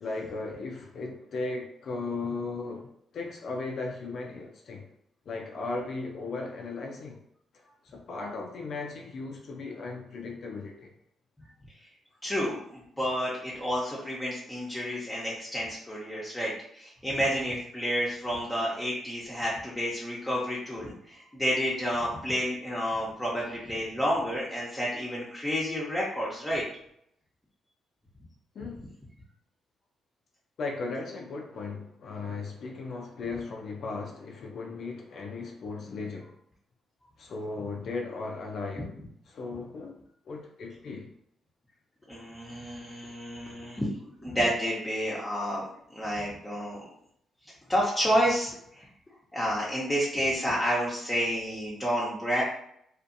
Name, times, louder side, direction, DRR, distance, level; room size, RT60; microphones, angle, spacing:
voice 1, 0.0-2.9 3.1-4.9 5.3-7.2 7.5-7.6 7.9-10.9 28.6-28.8 30.6-36.3 37.2-38.9 39.3-40.0 40.3-41.1, left 3 dB, 65° left, 1 dB, 0.4 m, -36 dB
voice 2, 12.2-26.6 42.1-43.9 44.2-45.6 45.9-46.8 47.7-48.9 49.3-52.4, equal, 15° left, -6 dB, 0.8 m, -30 dB
2.6 x 2.4 x 2.5 m, 0.70 s
supercardioid pair, 65°, 0 cm